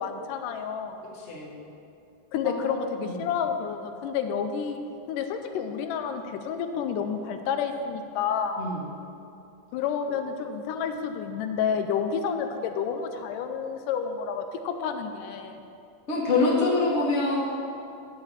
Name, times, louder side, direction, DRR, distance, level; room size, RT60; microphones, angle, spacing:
voice 1, 0.0-1.1 2.3-4.8 5.1-8.6 9.7-15.6, left 7 dB, 80° left, 7 dB, 2.1 m, -30 dB
voice 2, 1.1-1.5 2.4-2.5 3.0-3.1 8.6-8.9 16.1-17.5, left 3 dB, 35° left, -4 dB, 1.1 m, -25 dB
11.5 x 4.3 x 7.3 m, 2.7 s
omnidirectional pair, 3.8 m